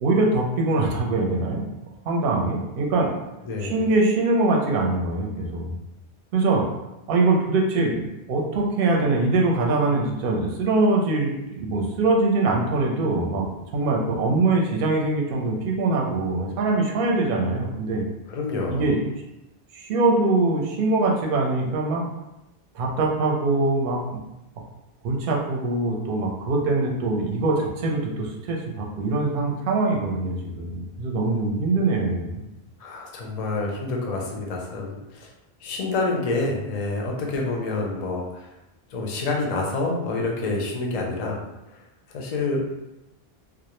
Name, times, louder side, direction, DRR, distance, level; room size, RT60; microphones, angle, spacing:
voice 1, 0.0-1.7 2.0-3.1 3.6-5.8 6.3-6.6 7.1-13.5 13.7-18.0 18.7-19.0 19.7-22.0 22.7-24.2 25.0-32.4, right 2 dB, 65° right, 0 dB, 0.7 m, -23 dB
voice 2, 3.5-3.9 18.3-18.9 32.8-35.3 35.6-38.4 38.9-41.4 42.1-42.6, left 3 dB, 50° left, -1 dB, 0.5 m, -27 dB
2.3 x 2.0 x 2.9 m, 0.94 s
omnidirectional pair, 1.1 m